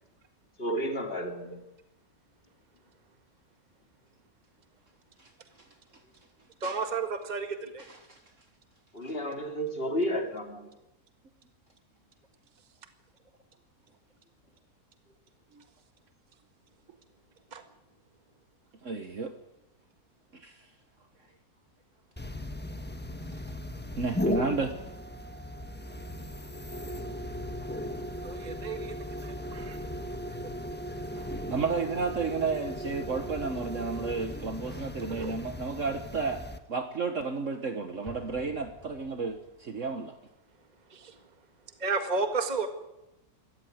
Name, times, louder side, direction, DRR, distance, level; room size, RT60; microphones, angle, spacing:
voice 1, 0.6-1.7 8.9-10.7, equal, 40° left, 3.1 m, -32 dB
voice 2, 6.6-7.8 17.5-17.6 28.2-28.9 29.2-29.8 30.3-30.4 35.0-35.3 40.9-41.2 41.8-42.7, right 4 dB, 30° right, 1.9 m, -32 dB
voice 3, 18.8-19.3 20.3-20.7 24.0-24.7 31.1-36.4 36.7-40.2, right 4 dB, 55° right, 1.7 m, -32 dB
sound 1, 22.2-36.6, left 1 dB, 5° left, 1.2 m, -37 dB
Explosion, 38.0-39.8, left 1 dB, 10° right, 3.6 m, -50 dB
26.0 x 14.5 x 9.4 m
omnidirectional pair, 1.6 m